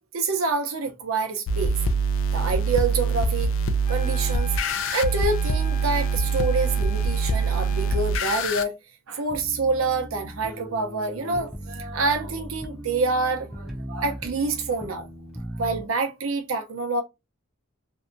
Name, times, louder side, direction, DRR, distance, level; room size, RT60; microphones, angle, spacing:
voice 1, 0.1-1.8 2.3-3.5 3.9-8.8 9.1-15.1 15.5-17.0, right 3 dB, 85° right, 0.7 m, -27 dB
sound 1, 1.5-8.6, right 3 dB, 70° left, 0.4 m, -24 dB
sound 2, 3.8-8.1, left 2 dB, 40° left, 1.1 m, -42 dB
sound 3, 9.3-15.8, equal, ahead, 0.4 m, -38 dB
2.7 x 2.2 x 2.5 m
head